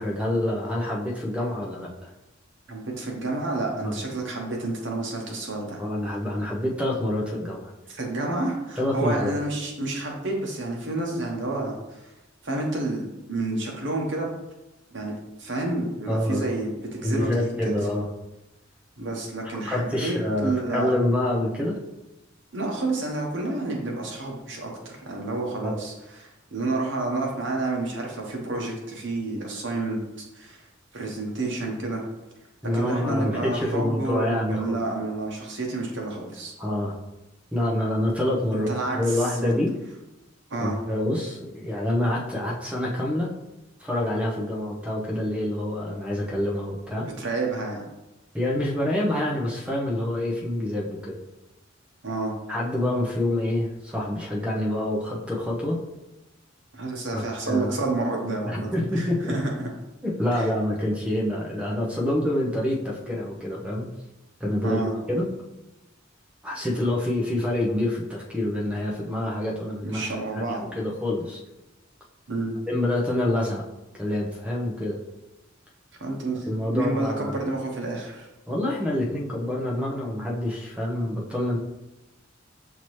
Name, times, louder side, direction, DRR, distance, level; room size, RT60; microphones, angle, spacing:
voice 1, 0.0-1.9 3.8-3.9 5.8-7.7 8.8-9.3 16.1-16.4 17.0-18.1 19.5-21.8 25.6-25.8 32.6-34.8 36.6-36.9 37.5-39.7 40.6-43.3 43.8-47.1 48.3-51.2 52.5-55.8 57.1-57.7 58.5-59.3 60.0-63.9 64.4-64.8 65.1-65.3 66.4-71.4 72.7-73.6 74.0-75.0 76.5-77.4 78.5-81.6, left 1 dB, 5° right, -2 dB, 0.7 m, -27 dB
voice 2, 2.7-5.8 7.9-12.1 12.4-14.3 14.9-15.1 15.4-17.8 19.0-20.1 20.4-20.9 22.5-30.6 30.9-32.0 32.7-36.5 38.5-39.5 40.5-40.8 47.2-47.9 52.0-52.3 56.7-59.7 60.3-60.5 64.6-64.9 69.8-70.6 72.3-72.5 76.0-78.3, right 2 dB, 65° right, 0 dB, 1.0 m, -29 dB
5.9 x 2.8 x 3.1 m, 0.97 s
head